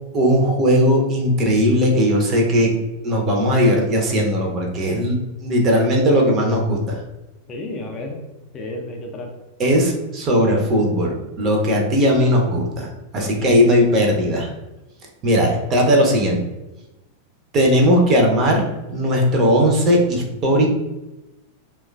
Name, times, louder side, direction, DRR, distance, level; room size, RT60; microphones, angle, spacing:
voice 1, 0.1-2.7 3.0-7.0 9.6-14.5 15.2-16.4 17.5-18.6 18.9-20.7, equal, 30° right, 0 dB, 0.5 m, -18 dB
voice 2, 7.5-8.2 8.5-9.3 13.1-13.7, left 2 dB, 25° left, 1 dB, 0.4 m, -32 dB
3.0 x 2.2 x 2.2 m, 1.0 s
figure-of-eight pair, 90°, 0 cm